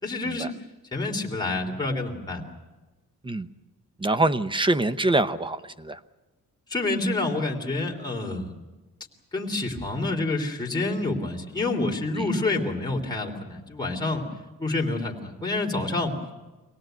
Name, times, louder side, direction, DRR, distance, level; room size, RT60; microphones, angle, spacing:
voice 1, 0.0-0.5 0.9-2.4 6.7-8.5 9.3-14.2 14.6-16.1, left 2 dB, 10° left, -1 dB, 3.2 m, -28 dB
voice 2, 4.0-6.0 12.2-12.3, right 2 dB, 15° right, 13 dB, 0.7 m, -25 dB
25.0 x 18.5 x 9.1 m, 1.2 s
cardioid pair, 145°, 33 cm